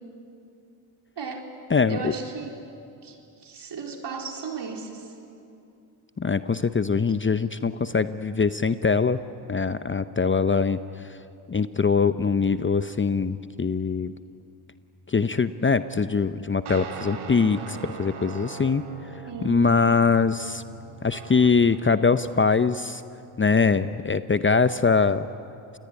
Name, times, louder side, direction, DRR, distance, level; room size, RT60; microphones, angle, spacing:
voice 1, 1.2-1.5 1.9-2.5 3.0-5.1 19.3-19.7, right 5 dB, 55° right, 2 dB, 4.3 m, -35 dB
voice 2, 1.7-2.1 6.2-9.2 9.5-11.2 11.5-14.1 15.1-18.8 19.4-20.6 21.0-23.0 23.4-25.3, left 5 dB, 25° left, 12 dB, 0.8 m, -22 dB
sound 1, 16.7-21.8, right 5 dB, 80° right, 2.9 m, -40 dB
27.5 x 20.5 x 9.8 m, 2.6 s
cardioid pair, 65°, 49 cm